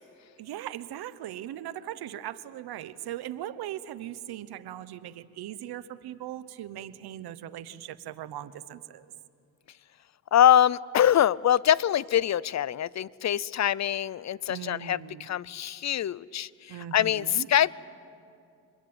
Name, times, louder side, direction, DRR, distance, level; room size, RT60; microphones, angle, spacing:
voice 1, 0.4-9.1 14.5-15.3 16.7-17.5, right 12 dB, 85° right, 14 dB, 1.0 m, -39 dB
voice 2, 10.3-17.7, left 10 dB, 45° left, 22 dB, 0.6 m, -24 dB
25.5 x 21.5 x 8.8 m, 2.5 s
cardioid pair, 75°, 37 cm